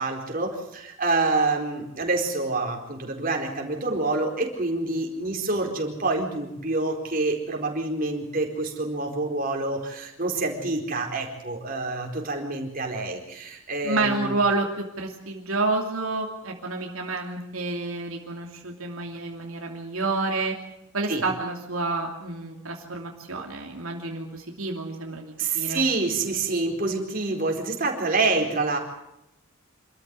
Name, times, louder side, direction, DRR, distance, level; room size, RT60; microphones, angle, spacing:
voice 1, 0.0-14.3 21.1-21.2 25.4-28.8, right 3 dB, 40° right, 1 dB, 4.3 m, -27 dB
voice 2, 13.8-20.6 20.9-25.8, right 3 dB, 75° right, 1 dB, 2.9 m, -29 dB
26.5 x 14.0 x 9.5 m, 0.85 s
head